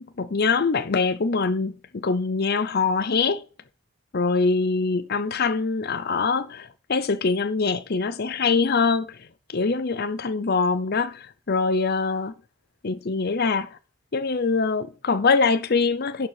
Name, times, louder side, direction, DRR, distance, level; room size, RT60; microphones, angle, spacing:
voice 1, 0.0-3.4 4.1-9.2 9.5-12.3 12.8-13.7 14.1-16.3, left 4 dB, 45° left, 0.6 m, -23 dB
11.0 x 5.0 x 5.9 m
head